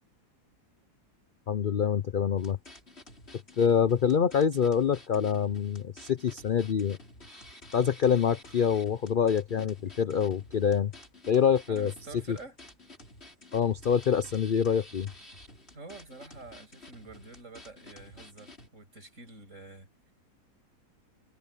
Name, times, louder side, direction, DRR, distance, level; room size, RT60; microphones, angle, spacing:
voice 1, 1.5-2.6 3.6-7.0 7.7-10.9 11.3-11.9 12.3-12.4 13.5-15.1, left 7 dB, 55° left, 0.5 m, -26 dB
sound 1, 2.4-18.7, left 1 dB, 40° left, 6.2 m, -51 dB
voice 2, 11.7-12.6 15.7-20.1, right 3 dB, 50° right, 7.1 m, -48 dB
omnidirectional pair, 1.7 m